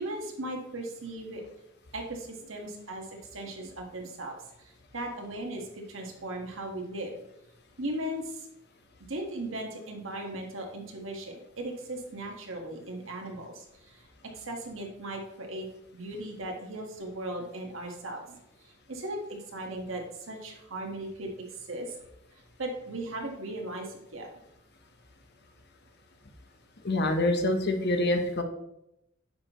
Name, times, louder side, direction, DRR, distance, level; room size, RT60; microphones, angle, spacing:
voice 1, 0.0-1.4 1.9-7.2 7.8-8.5 9.1-14.0 14.3-15.7 15.9-18.4 18.6-22.0 22.6-24.3, right 1 dB, 65° right, 2 dB, 1.6 m, -37 dB
voice 2, 26.8-28.4, left 1 dB, 55° left, 5 dB, 1.1 m, -26 dB
9.6 x 6.6 x 3.1 m, 0.83 s
head